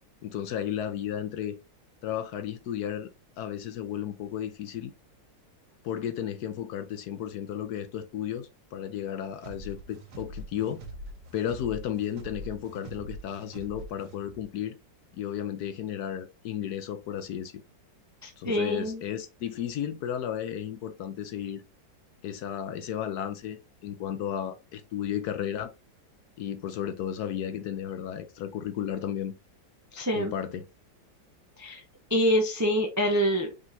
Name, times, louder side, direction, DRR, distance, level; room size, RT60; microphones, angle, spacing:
voice 1, 0.2-1.6 2.0-3.1 3.4-4.9 5.8-10.8 11.3-14.8 15.1-17.5 18.4-21.6 22.2-25.7 26.4-29.3 30.1-30.6, left 10 dB, 70° left, 1.0 m, -33 dB
sound 1, 9.4-14.5, right 1 dB, 75° right, 1.8 m, -43 dB
voice 2, 18.2-19.0 29.9-30.3 31.6-31.8 32.1-33.5, equal, 25° right, 0.3 m, -26 dB
5.1 x 3.8 x 2.6 m
omnidirectional pair, 2.0 m